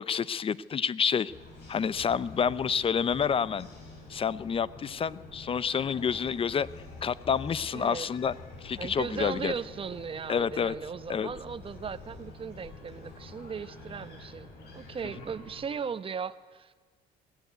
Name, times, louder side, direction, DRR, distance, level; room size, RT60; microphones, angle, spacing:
voice 1, 0.0-1.3 1.7-3.7 4.1-6.7 7.0-8.3 8.6-9.5 10.3-10.7 11.1-11.3, left 7 dB, 35° left, 18 dB, 0.6 m, -28 dB
sound 1, 1.3-15.6, left 2 dB, 80° left, 7.0 m, -47 dB
voice 2, 7.7-8.1 8.8-14.5 14.7-16.7, right 6 dB, 30° right, 13 dB, 1.0 m, -37 dB
21.5 x 16.0 x 9.4 m, 1.4 s
cardioid pair, 110°, 17 cm